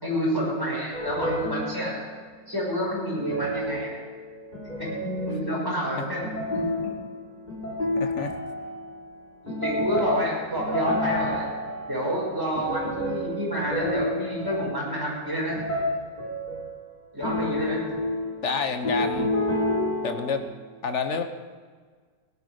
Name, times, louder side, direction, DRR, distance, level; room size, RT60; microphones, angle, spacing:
voice 1, 0.0-2.1 2.5-4.0 4.8-4.9 5.2-6.6 9.4-11.5 11.9-15.6 17.1-17.8, right 1 dB, 10° right, -4 dB, 5.6 m, -29 dB
sound 1, 0.9-2.3 3.2-9.0 9.5-16.8 17.2-20.4, left 1 dB, 25° left, 3.9 m, -30 dB
voice 2, 8.0-8.3 10.0-10.1 18.4-19.3 20.0-20.5 20.8-21.2, left 5 dB, 45° left, 7 dB, 1.2 m, -28 dB
17.0 x 12.0 x 5.0 m, 1.5 s
omnidirectional pair, 1.9 m